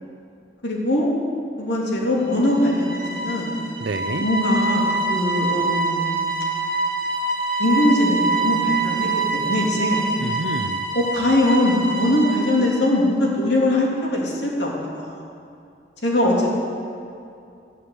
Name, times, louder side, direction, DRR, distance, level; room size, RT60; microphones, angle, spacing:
voice 1, 0.6-1.1 1.6-3.6 4.2-6.2 7.6-10.1 10.9-15.2 16.0-16.5, left 1 dB, 70° left, -3 dB, 3.2 m, -21 dB
sound 1, 2.2-13.0, right 3 dB, 55° right, 1.8 m, -25 dB
voice 2, 3.8-4.3 10.2-10.8, right 3 dB, 80° right, 11 dB, 0.6 m, -28 dB
12.5 x 10.0 x 8.2 m, 2.5 s
head